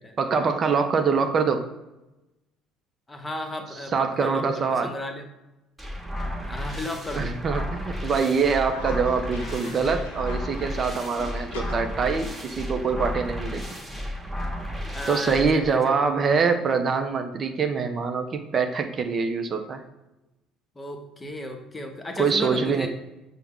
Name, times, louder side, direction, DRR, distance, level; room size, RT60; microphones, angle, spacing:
voice 1, 0.2-1.6 3.9-4.9 7.1-13.6 15.1-19.8 22.2-22.9, right 5 dB, 45° right, 6 dB, 0.4 m, -24 dB
voice 2, 3.1-5.2 6.5-7.4 14.9-16.1 20.8-22.9, left 1 dB, 20° left, 4 dB, 0.7 m, -34 dB
sound 1, 5.8-15.7, equal, 10° right, 1.0 m, -33 dB
Cough, 8.7-13.7, left 4 dB, 85° left, 0.5 m, -43 dB
5.5 x 2.0 x 3.5 m, 0.98 s
hypercardioid pair, 65°, 0 cm